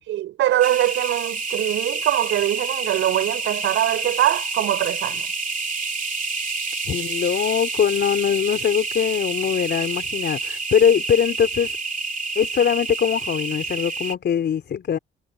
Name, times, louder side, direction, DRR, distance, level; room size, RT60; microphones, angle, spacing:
voice 1, 0.1-5.3, right 13 dB, 80° right, 6.2 m, -22 dB
sound 1, 0.6-14.1, right 4 dB, 40° right, 3.3 m, -28 dB
voice 2, 6.8-11.8 12.4-15.0, left 8 dB, 60° left, 4.2 m, -22 dB
cardioid pair, 90°, 20 cm